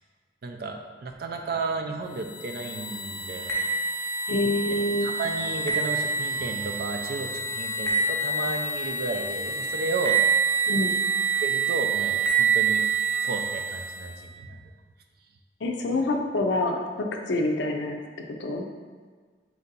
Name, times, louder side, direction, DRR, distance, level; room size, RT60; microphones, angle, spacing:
voice 1, 0.4-3.8 5.0-10.2 11.4-12.8 13.2-14.6, right 3 dB, 55° right, 4 dB, 0.4 m, -33 dB
sound 1, 2.1-14.2, right 5 dB, 15° left, 0.7 m, -27 dB
voice 2, 4.3-5.1 10.7-10.9 15.6-18.0 18.4-18.6, left 2 dB, 65° left, 3 dB, 0.5 m, -26 dB
4.4 x 2.7 x 3.9 m, 1.5 s
head